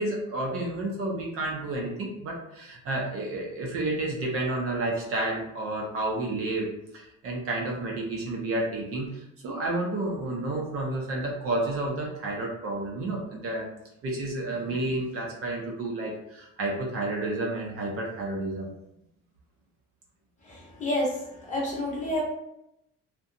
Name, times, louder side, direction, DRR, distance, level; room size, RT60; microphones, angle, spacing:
voice 1, 0.0-13.7 14.0-18.7, right 2 dB, 45° right, -1 dB, 0.5 m, -30 dB
voice 2, 20.5-21.2 21.5-22.2, left 1 dB, 25° left, -5 dB, 0.7 m, -29 dB
2.6 x 2.1 x 2.5 m, 0.82 s
cardioid pair, 175°, 31 cm